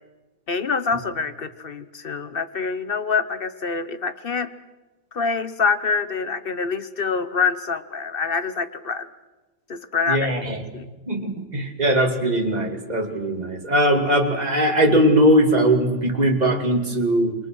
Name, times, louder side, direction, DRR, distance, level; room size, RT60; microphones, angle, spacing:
voice 1, 0.5-4.5 5.1-9.1 9.7-10.3 10.7-10.9, left 5 dB, 40° left, 12 dB, 0.9 m, -25 dB
voice 2, 10.1-10.6 11.1-17.3, right 1 dB, 25° right, 3 dB, 2.6 m, -20 dB
28.0 x 23.0 x 6.4 m, 1.2 s
omnidirectional pair, 1.8 m